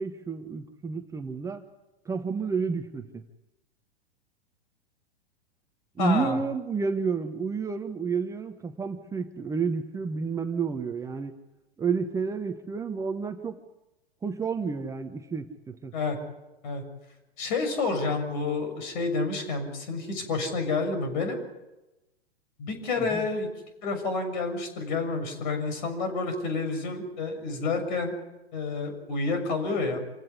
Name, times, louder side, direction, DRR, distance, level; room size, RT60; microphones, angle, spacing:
voice 1, 0.0-1.6 2.0-3.2 6.0-11.4 11.8-13.6 14.2-15.9 23.0-23.3, right 5 dB, 10° right, 6 dB, 1.0 m, -30 dB
voice 2, 6.0-6.4 15.9-16.2 16.6-16.8 17.4-21.4 22.6-23.5 23.8-28.1 28.5-30.0, left 3 dB, 45° left, 7 dB, 6.6 m, -29 dB
27.0 x 16.5 x 9.7 m, 1.0 s
figure-of-eight pair, 110°, 31 cm